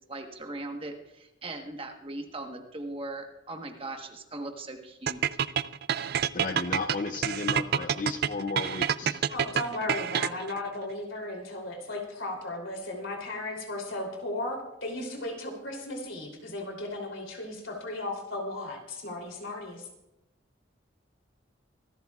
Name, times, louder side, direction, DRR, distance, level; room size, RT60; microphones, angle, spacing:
voice 1, 0.1-5.2, right 2 dB, 30° right, 3 dB, 1.3 m, -39 dB
sound 1, 5.1-10.6, right 8 dB, 50° right, 0.4 m, -27 dB
voice 2, 6.3-9.2, left 3 dB, 40° left, 6 dB, 0.6 m, -34 dB
voice 3, 9.3-19.9, left 2 dB, 85° left, 1 dB, 3.3 m, -36 dB
25.5 x 13.0 x 2.4 m, 0.93 s
head